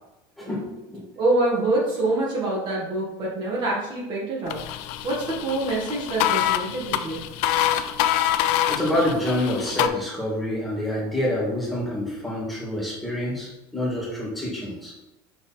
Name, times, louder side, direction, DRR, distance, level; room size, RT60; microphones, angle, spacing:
voice 1, 0.4-1.0 8.7-14.9, left 1 dB, ahead, -6 dB, 2.2 m, -27 dB
voice 2, 1.2-4.6 5.0-7.2, right 2 dB, 40° right, -4 dB, 1.8 m, -25 dB
sound 1, 4.5-9.9, left 12 dB, 65° left, 0.5 m, -25 dB
6.0 x 3.8 x 4.3 m, 0.99 s
supercardioid pair, 135°, 12 cm